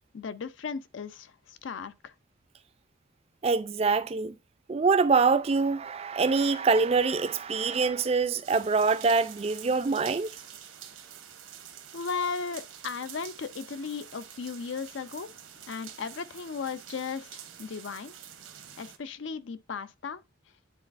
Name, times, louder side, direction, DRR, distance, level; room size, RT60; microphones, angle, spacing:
voice 1, 0.1-2.1 11.9-15.3 15.7-18.1 18.8-20.2, left 5 dB, 70° left, 0.5 m, -36 dB
voice 2, 3.4-4.4 4.7-10.3, right 4 dB, 30° right, 0.4 m, -25 dB
sound 1, 8.4-19.0, right 9 dB, 90° right, 1.0 m, -47 dB
10.0 x 4.0 x 2.5 m
head